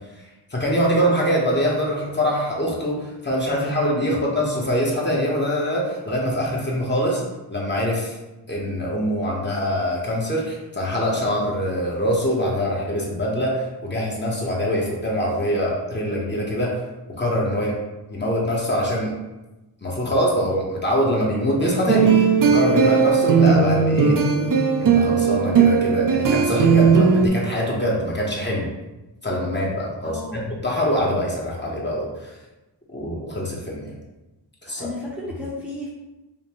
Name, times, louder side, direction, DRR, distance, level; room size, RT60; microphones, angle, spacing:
voice 1, 0.5-7.2 7.5-8.2 8.5-16.8 17.2-17.7 18.1-19.1 19.8-22.2 22.5-24.2 24.8-28.7 29.2-32.3 32.9-33.9 34.6-34.9, equal, 25° left, -4 dB, 0.8 m, -24 dB
sound 1, 21.6-27.3, right 5 dB, 50° right, 0.5 m, -17 dB
voice 2, 30.0-30.5 34.7-35.9, left 2 dB, 5° right, -5 dB, 0.7 m, -33 dB
5.1 x 2.0 x 2.9 m, 1.0 s
wide cardioid pair, 95°, 42 cm